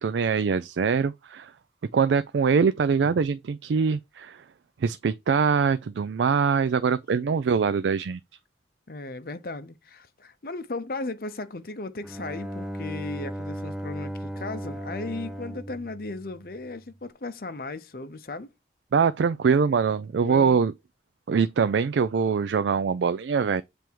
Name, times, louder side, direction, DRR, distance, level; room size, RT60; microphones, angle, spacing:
voice 1, 0.0-1.5 1.9-4.4 4.8-8.2 18.9-20.7 21.3-23.6, right 6 dB, 80° right, 0.4 m, -23 dB
voice 2, 8.9-18.5 20.1-20.6, left 2 dB, 55° left, 0.8 m, -36 dB
Bowed string instrument, 12.0-16.9, right 1 dB, 5° right, 0.4 m, -36 dB
7.5 x 3.5 x 4.6 m
head